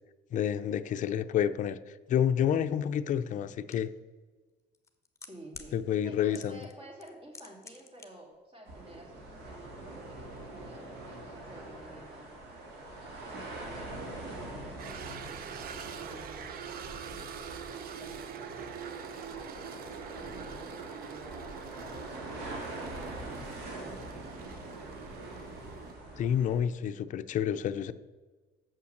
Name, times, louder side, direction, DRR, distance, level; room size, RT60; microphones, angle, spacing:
voice 1, 0.3-3.9 5.7-6.6 26.2-27.9, left 9 dB, 50° left, 11 dB, 0.4 m, -29 dB
sound 1, 3.7-3.8 4.7-5.7 6.3-6.7 7.0-8.1 8.3-8.4, left 4 dB, 15° left, 0.9 m, -47 dB
voice 2, 5.3-5.7 6.0-12.3 13.0-14.8 15.5-16.5 17.0-18.8 19.1-23.2 23.6-24.8, right 1 dB, 35° right, 0 dB, 2.5 m, -52 dB
sound 2, 8.7-26.6, right 2 dB, 80° right, 2.0 m, -44 dB
sound 3, 14.8-25.9, right 7 dB, 60° right, 0.7 m, -44 dB
7.1 x 5.8 x 6.4 m, 1.3 s
cardioid pair, 110°, 17 cm